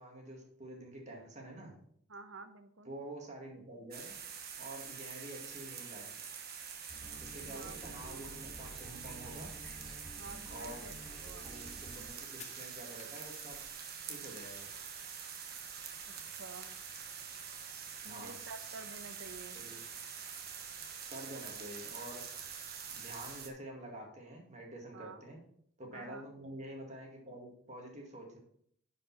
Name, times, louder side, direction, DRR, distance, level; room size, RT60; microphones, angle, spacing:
voice 1, 0.0-1.7 2.9-4.1 4.6-6.2 7.2-9.5 10.5-10.9 11.4-13.6 14.1-14.7 18.0-18.4 19.5-19.8 21.1-22.2 22.8-25.4 25.8-28.4, right 1 dB, 35° right, 0 dB, 2.1 m, -48 dB
voice 2, 2.1-2.9 7.4-7.8 10.2-10.9 11.2-11.5 16.4-16.8 18.0-19.6 24.9-25.2 25.9-26.2, right 3 dB, 80° right, 10 dB, 0.8 m, -50 dB
sound 1, 3.9-23.5, right 7 dB, 50° right, 1.2 m, -46 dB
sound 2, 6.9-12.0, right 1 dB, ahead, 2.0 m, -51 dB
sound 3, 11.9-12.1 12.4-14.5 14.9-15.0 15.1-15.2 15.5-16.0 16.3-17.5 17.8-19.3, left 6 dB, 35° left, 1.1 m, -57 dB
10.0 x 5.4 x 4.1 m, 0.67 s
head